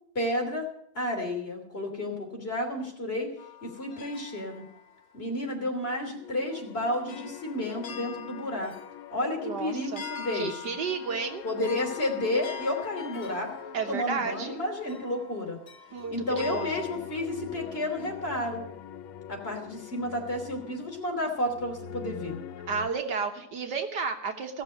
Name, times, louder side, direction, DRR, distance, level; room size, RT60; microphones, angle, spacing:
voice 1, 0.1-0.7 0.9-3.3 3.6-4.6 5.1-8.7 9.1-10.8 11.4-13.5 13.9-15.6 16.1-18.6 19.3-22.4, left 1 dB, 30° left, 0 dB, 3.2 m, -31 dB
sound 1, 3.4-5.3 6.2-6.3 7.1-17.0, left 9 dB, 45° left, 0.8 m, -44 dB
sound 2, 6.1-22.9, left 9 dB, 90° left, 1.5 m, -44 dB
voice 2, 9.4-10.0 10.3-11.4 13.7-14.6 15.9-16.8 22.7-24.6, right 5 dB, 60° right, 5 dB, 1.6 m, -32 dB
16.0 x 6.7 x 7.8 m, 0.72 s
omnidirectional pair, 2.2 m